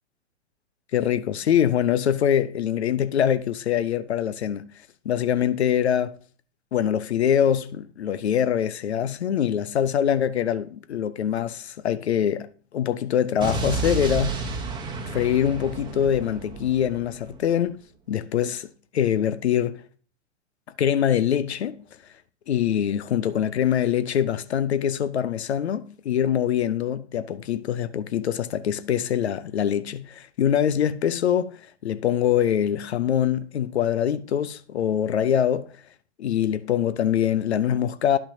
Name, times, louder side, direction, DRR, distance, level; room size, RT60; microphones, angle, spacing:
voice 1, 0.9-4.6 5.1-6.2 6.7-14.5 15.1-19.8 20.8-21.8 22.5-31.6 31.8-35.7 36.2-38.2, left 9 dB, 65° left, 0.6 m, -24 dB
Explosion, 13.4-17.5, right 3 dB, 10° right, 1.1 m, -31 dB
10.5 x 5.7 x 2.7 m
figure-of-eight pair, 105°, 36 cm